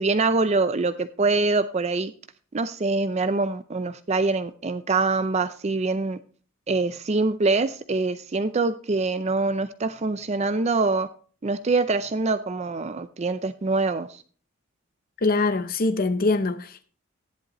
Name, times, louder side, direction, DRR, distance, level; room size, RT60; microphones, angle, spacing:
voice 1, 0.0-2.1 2.5-6.2 6.7-11.1 11.4-14.2, right 3 dB, 35° right, 0.5 m, -24 dB
voice 2, 15.2-16.8, left 3 dB, 45° left, 0.7 m, -23 dB
14.0 x 10.5 x 3.0 m
head